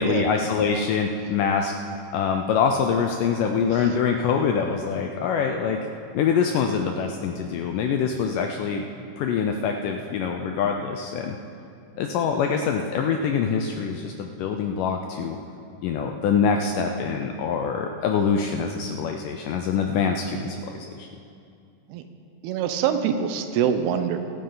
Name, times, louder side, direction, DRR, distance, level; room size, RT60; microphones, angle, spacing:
voice 1, 0.0-1.7 2.1-5.8 6.1-8.9 9.2-11.4 12.0-15.4 15.8-21.1, left 6 dB, 80° left, 3 dB, 1.9 m, -24 dB
voice 2, 22.4-24.2, right 8 dB, 90° right, 8 dB, 2.8 m, -24 dB
23.5 x 9.4 x 3.9 m, 2.4 s
omnidirectional pair, 4.5 m